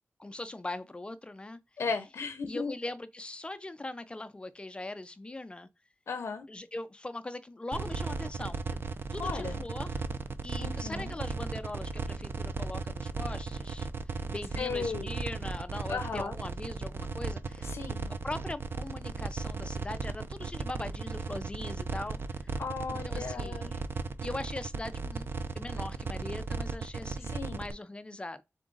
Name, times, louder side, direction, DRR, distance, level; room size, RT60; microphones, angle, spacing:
voice 1, 0.2-1.6 2.5-5.7 6.5-8.8 9.1-10.0 10.4-18.0 18.2-22.5 22.9-23.8 24.2-28.4, left 2 dB, 25° left, 0.4 m, -41 dB
voice 2, 1.8-2.7 6.1-6.5 9.2-9.6 10.6-11.1 14.6-15.1 15.9-16.4 17.6-18.1 22.6-23.8 27.2-27.6, left 5 dB, 80° left, 0.5 m, -36 dB
sound 1, 7.7-27.7, right 4 dB, 55° right, 0.4 m, -36 dB
3.8 x 3.6 x 3.7 m
wide cardioid pair, 125°, 5 cm